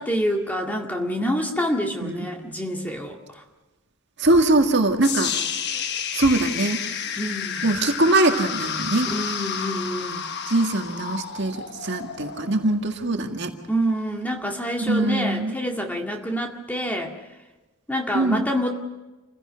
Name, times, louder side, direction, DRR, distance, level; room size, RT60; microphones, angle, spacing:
voice 1, 0.0-3.4 7.2-7.7 9.1-10.3 13.7-17.1 17.9-18.7, equal, 5° left, 2 dB, 2.0 m, -27 dB
voice 2, 4.2-5.3 6.1-6.8 7.6-9.1 10.5-11.6 11.8-13.5 14.8-15.5 18.1-18.4, right 2 dB, 50° right, 4 dB, 1.9 m, -22 dB
sound 1, 5.0-13.1, left 7 dB, 50° left, 1.2 m, -30 dB
28.0 x 16.5 x 5.8 m, 1.1 s
head